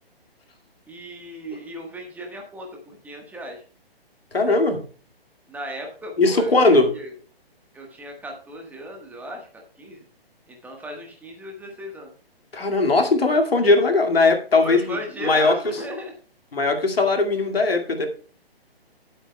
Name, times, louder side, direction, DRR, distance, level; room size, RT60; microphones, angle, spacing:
voice 1, 0.9-3.6 5.5-7.1 7.7-10.1 10.5-12.1 14.6-16.1, right 1 dB, 5° right, 2 dB, 1.4 m, -36 dB
voice 2, 4.3-4.8 6.2-6.9 12.5-15.0 15.2-15.5 16.5-18.1, left 3 dB, 70° left, 4 dB, 2.3 m, -19 dB
18.5 x 8.0 x 2.3 m, 0.40 s
figure-of-eight pair, 135°, 30 cm